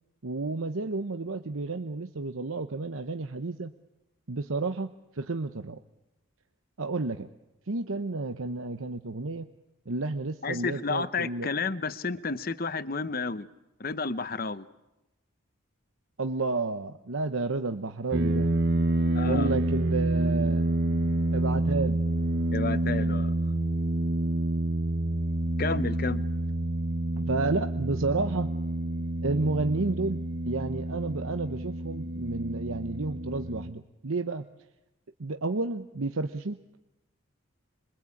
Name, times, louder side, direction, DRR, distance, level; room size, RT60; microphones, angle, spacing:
voice 1, 0.2-3.7 4.3-5.8 6.8-7.3 7.7-9.5 9.9-11.5 16.2-18.5 19.2-20.8 21.3-22.0 27.2-28.5 29.2-34.5 35.2-36.6, right 3 dB, 75° right, 0.9 m, -31 dB
voice 2, 10.4-13.5 13.8-14.7 19.1-19.5 22.5-23.3 25.6-26.2, left 4 dB, 45° left, 0.9 m, -31 dB
sound 1, 18.1-33.7, right 1 dB, 55° right, 1.1 m, -28 dB
26.5 x 23.5 x 8.5 m
head